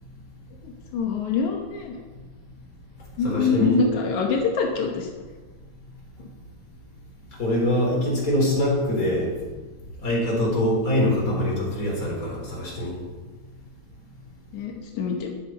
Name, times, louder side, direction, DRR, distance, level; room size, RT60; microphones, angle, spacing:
voice 1, 0.6-2.0 3.2-5.1 6.2-6.3 14.5-15.3, left 5 dB, 80° left, 1 dB, 2.6 m, -25 dB
voice 2, 3.2-3.9 7.4-9.3 10.0-13.0, left 1 dB, 30° left, -3 dB, 4.3 m, -23 dB
13.5 x 11.0 x 4.6 m, 1.3 s
omnidirectional pair, 3.3 m